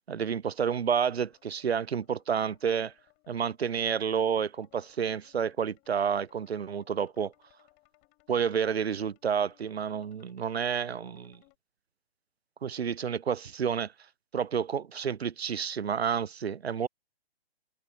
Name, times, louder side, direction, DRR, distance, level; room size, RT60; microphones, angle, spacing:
voice 1, 0.1-2.9 3.3-7.3 8.3-11.4 12.6-13.9 14.3-16.9, right 7 dB, 80° right, 0.5 m, -30 dB
sound 1, 0.8-11.6, left 27 dB, 25° left, 6.9 m, -66 dB
figure-of-eight pair, 125°, 31 cm